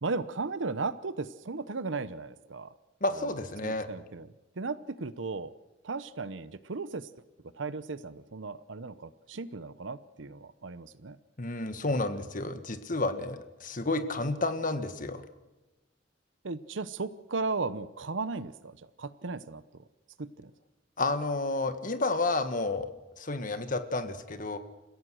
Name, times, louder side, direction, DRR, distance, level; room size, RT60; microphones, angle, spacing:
voice 1, 0.0-2.7 3.1-3.2 3.6-4.3 4.6-5.5 5.8-7.1 7.5-11.2 16.4-19.8 20.2-20.5, right 3 dB, 80° right, 15 dB, 0.8 m, -36 dB
voice 2, 3.0-3.9 11.4-15.2 21.0-22.9 23.2-24.6, left 2 dB, 45° left, 9 dB, 1.6 m, -31 dB
29.5 x 16.0 x 6.4 m, 1.1 s
head